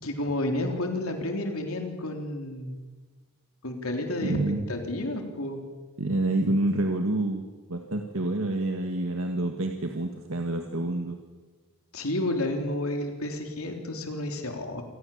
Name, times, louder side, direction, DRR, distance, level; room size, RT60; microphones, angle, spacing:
voice 1, 0.0-2.8 3.6-4.4 4.7-5.6 11.9-14.8, left 1 dB, 75° left, 4 dB, 3.6 m, -31 dB
voice 2, 4.2-4.7 6.0-11.2, right 2 dB, 65° right, 4 dB, 1.8 m, -28 dB
27.0 x 18.5 x 7.4 m, 1.3 s
head